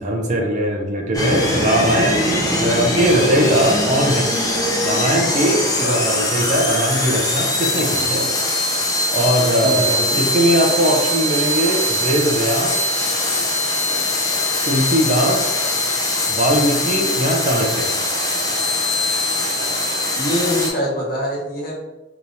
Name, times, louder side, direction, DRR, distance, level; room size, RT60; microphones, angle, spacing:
voice 1, 0.0-4.3 4.8-8.3 9.1-9.9 10.1-12.9 14.6-15.7 16.3-17.9, equal, 40° right, 0 dB, 0.6 m, -20 dB
sound 1, 1.1-20.7, left 1 dB, 20° left, 0.6 m, -21 dB
voice 2, 9.6-10.2 20.2-21.7, equal, 55° left, -5 dB, 1.3 m, -24 dB
3.5 x 2.9 x 2.6 m, 1.1 s
head